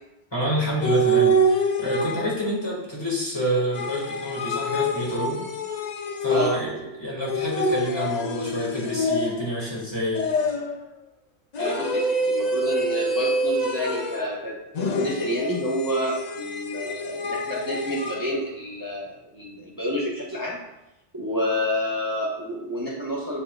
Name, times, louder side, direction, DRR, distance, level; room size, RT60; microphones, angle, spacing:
voice 1, 0.3-5.4 6.2-10.3, equal, 20° left, -5 dB, 1.9 m, -27 dB
sound 1, 0.8-2.5 3.7-6.8 7.3-9.6 10.1-10.9 11.5-14.3 14.7-18.3, right 1 dB, 50° left, 0.5 m, -26 dB
voice 2, 6.3-6.8 11.6-20.6 21.1-23.4, equal, 15° right, -6 dB, 1.2 m, -29 dB
9.8 x 4.4 x 2.4 m, 0.91 s
omnidirectional pair, 1.2 m